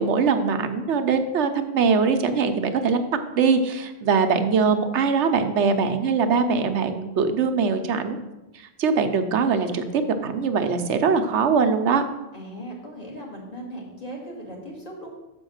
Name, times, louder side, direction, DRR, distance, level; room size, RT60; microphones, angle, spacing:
voice 1, 0.0-8.2 8.5-12.0, right 5 dB, 80° right, 8 dB, 1.1 m, -22 dB
voice 2, 12.3-15.1, right 1 dB, 35° left, -2 dB, 2.2 m, -38 dB
6.8 x 5.3 x 6.4 m, 1.0 s
omnidirectional pair, 1.2 m